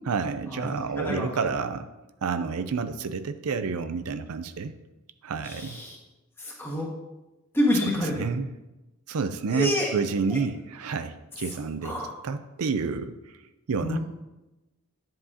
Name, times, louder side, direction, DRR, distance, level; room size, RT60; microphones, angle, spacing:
voice 1, 0.0-1.8 2.2-4.8 5.2-5.8 7.8-8.5 9.1-12.0 12.2-13.1 13.7-14.0, right 5 dB, 80° right, 10 dB, 0.5 m, -29 dB
voice 2, 5.4-5.9 6.4-6.9 7.5-8.3 9.5-9.9 11.8-12.1 13.8-14.0, left 1 dB, 10° left, -3 dB, 1.6 m, -27 dB
10.5 x 7.6 x 2.8 m, 1.0 s
head